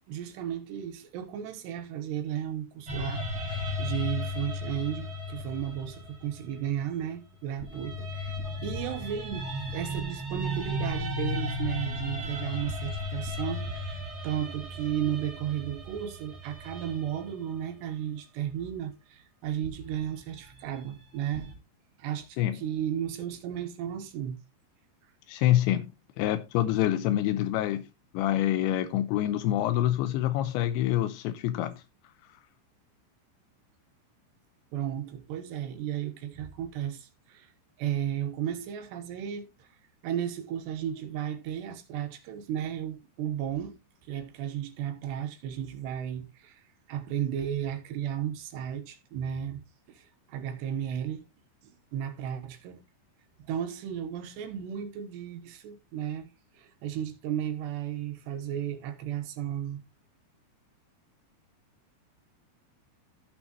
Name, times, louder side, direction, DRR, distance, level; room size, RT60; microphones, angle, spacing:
voice 1, 0.1-8.4 8.6-21.6 22.0-24.4 34.7-37.5 37.8-39.7 40.0-49.6 49.9-51.2 51.6-52.8 53.5-56.3 56.5-59.8, right 10 dB, 75° right, 3.3 m, -34 dB
sound 1, 2.8-7.1 7.6-17.6 19.6-21.5, left 1 dB, 30° right, 1.3 m, -35 dB
voice 2, 25.3-25.9 26.2-27.9 28.1-31.8, left 13 dB, 85° left, 2.9 m, -26 dB
15.0 x 6.1 x 3.0 m
omnidirectional pair, 5.2 m